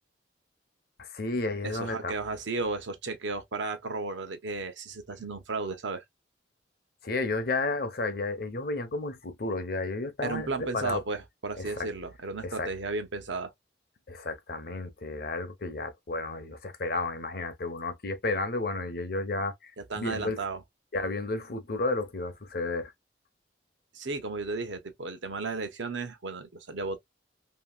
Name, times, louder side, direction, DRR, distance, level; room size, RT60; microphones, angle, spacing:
voice 1, 1.0-2.1 7.0-11.0 11.6-11.9 12.4-12.7 14.1-20.4 20.9-22.9, left 3 dB, 50° left, 0.7 m, -32 dB
voice 2, 1.6-6.0 10.2-13.5 19.8-20.6 23.9-27.0, right 3 dB, 75° right, 0.8 m, -34 dB
2.8 x 2.8 x 2.2 m
head